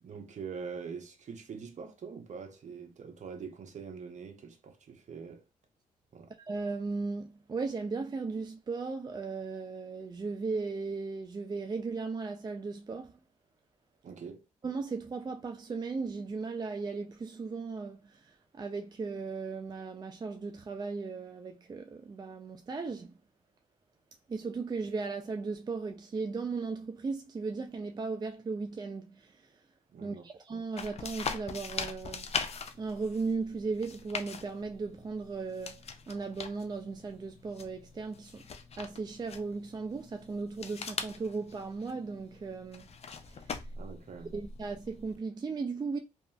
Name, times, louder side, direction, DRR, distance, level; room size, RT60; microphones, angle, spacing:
voice 1, 0.0-5.4 6.1-6.3 14.0-14.5 29.9-30.3 43.7-44.3, right 6 dB, 55° right, 0.7 m, -44 dB
voice 2, 6.5-13.2 14.6-23.2 24.3-29.6 30.0-32.3 32.8-38.4 38.8-42.9 43.3-43.6 44.3-46.0, right 4 dB, 30° right, 0.4 m, -37 dB
sound 1, 30.8-45.2, left 5 dB, 45° left, 0.5 m, -42 dB
2.8 x 2.5 x 2.2 m
cardioid pair, 70°, 15 cm